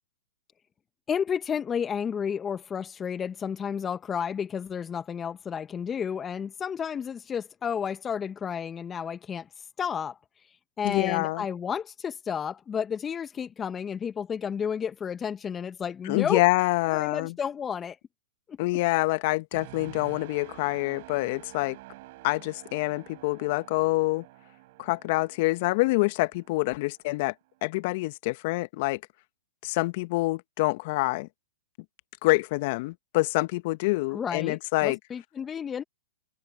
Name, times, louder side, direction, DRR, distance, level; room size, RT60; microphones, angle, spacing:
voice 1, 1.1-9.5 9.8-10.2 10.8-16.5 16.9-18.0 18.5-18.6 34.1-35.8, left 7 dB, 20° left, 1.1 m, -31 dB
voice 2, 10.8-11.4 16.1-17.3 18.6-21.8 22.2-24.2 24.8-27.3 27.6-29.0 29.6-31.3 32.2-35.0, left 22 dB, 50° left, 1.6 m, -26 dB
sound 1, 19.5-27.3 27.8-28.0, right 21 dB, 50° right, 4.4 m, -49 dB
hypercardioid pair, 115°, 0 cm